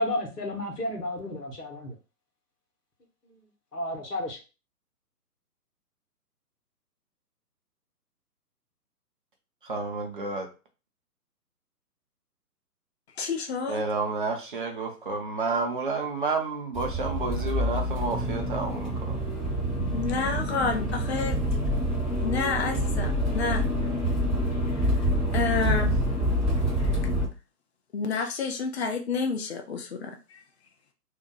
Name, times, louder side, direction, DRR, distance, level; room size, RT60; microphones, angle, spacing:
voice 1, 0.0-1.9 3.7-4.4, left 1 dB, 75° left, 1 dB, 1.1 m, -31 dB
voice 2, 9.6-10.5 13.7-19.2, right 3 dB, 35° right, 4 dB, 0.6 m, -30 dB
voice 3, 13.2-13.8 19.9-21.4 21.9-22.0 22.2-23.7 25.3-25.9 27.9-30.2, left 4 dB, 45° left, 4 dB, 0.5 m, -29 dB
Accelerating revving vroom, 16.7-27.2, equal, ahead, 0.9 m, -27 dB
2.7 x 2.1 x 3.8 m, 0.32 s
figure-of-eight pair, 130°, 48 cm